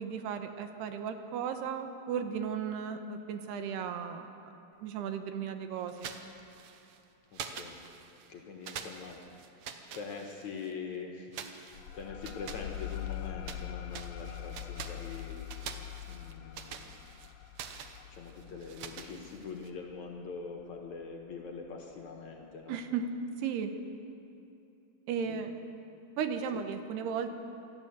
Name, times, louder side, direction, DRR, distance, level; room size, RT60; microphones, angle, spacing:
voice 1, 0.0-4.3 4.8-6.1 22.7-23.7 25.1-25.5 26.2-27.3, right 7 dB, 85° right, 7 dB, 3.2 m, -35 dB
sound 1, 5.9-7.0 7.3-8.3 8.6-10.7 11.3-13.7 13.9-19.7, right 7 dB, 70° right, 1.7 m, -46 dB
voice 2, 7.3-7.8 8.3-9.2 9.9-15.4 16.1-16.9 18.0-22.8 25.2-25.4 26.5-26.6, left 5 dB, 60° left, 2 dB, 2.3 m, -43 dB
sound 2, 11.7-21.0, left 12 dB, 85° left, 2.7 m, -43 dB
27.0 x 12.0 x 8.1 m, 2.8 s
omnidirectional pair, 4.6 m